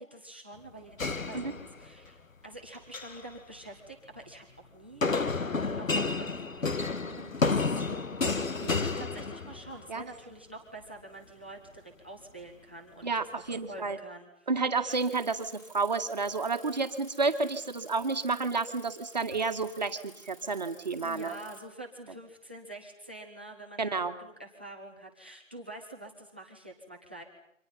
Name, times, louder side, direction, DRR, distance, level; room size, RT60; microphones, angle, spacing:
voice 1, 0.0-4.5 4.7-5.1 5.7-14.5 14.8-15.0 21.0-27.2, right 1 dB, 10° right, 1 dB, 1.1 m, -46 dB
sound 1, 1.0-2.1 2.8-3.2 5.0-9.8, left 4 dB, 80° left, 1.8 m, -30 dB
voice 2, 13.0-14.0 14.5-21.3 23.8-24.1, right 4 dB, 30° right, 7 dB, 1.9 m, -30 dB
Bicycle, 14.9-21.6, equal, 15° left, 3.1 m, -54 dB
29.0 x 25.5 x 5.6 m, 0.78 s
figure-of-eight pair, 175°, 39 cm